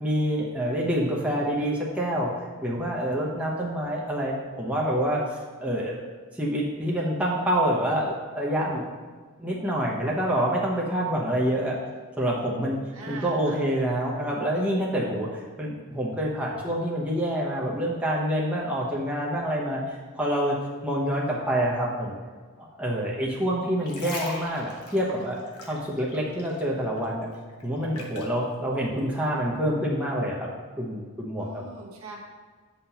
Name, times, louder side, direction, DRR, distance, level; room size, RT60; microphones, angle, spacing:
voice 1, 0.0-2.3 2.6-8.8 9.4-11.8 12.2-12.8 13.1-20.6 20.8-22.1 22.6-25.4 25.7-27.3 27.6-30.5 30.8-31.6, equal, 5° right, -4 dB, 0.8 m, -27 dB
voice 2, 12.9-13.6 31.4-32.2, right 2 dB, 65° right, -1 dB, 1.1 m, -41 dB
sound 1, 23.6-26.7 27.0-28.4 29.0-29.1, left 2 dB, 80° left, 1.2 m, -39 dB
8.3 x 5.5 x 2.9 m, 1.5 s
head